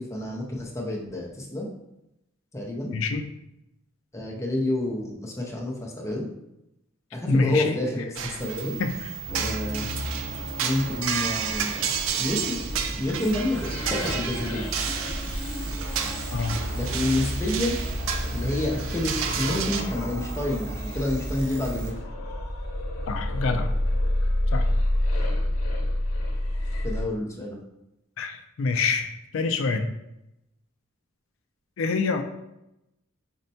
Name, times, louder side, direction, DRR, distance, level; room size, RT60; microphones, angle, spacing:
voice 1, 0.0-1.7 2.5-2.9 4.1-6.3 7.1-8.8 9.3-10.0 10.6-11.9 12.2-12.6 13.0-14.6 16.7-17.8 18.3-21.9 26.8-27.6, left 1 dB, 15° left, -2 dB, 0.5 m, -29 dB
voice 2, 2.9-3.3 7.3-7.8 8.8-9.1 16.3-16.6 23.1-23.7 24.5-24.7 28.2-29.9 31.8-32.2, left 4 dB, 65° left, 7 dB, 0.3 m, -26 dB
sound 1, 8.2-19.8, right 6 dB, 70° right, 0.3 m, -31 dB
sound 2, 8.4-21.9, right 3 dB, 45° right, 0.8 m, -37 dB
sound 3, 9.3-27.0, left 1 dB, 85° left, 0.7 m, -30 dB
5.2 x 2.1 x 2.7 m, 0.87 s
head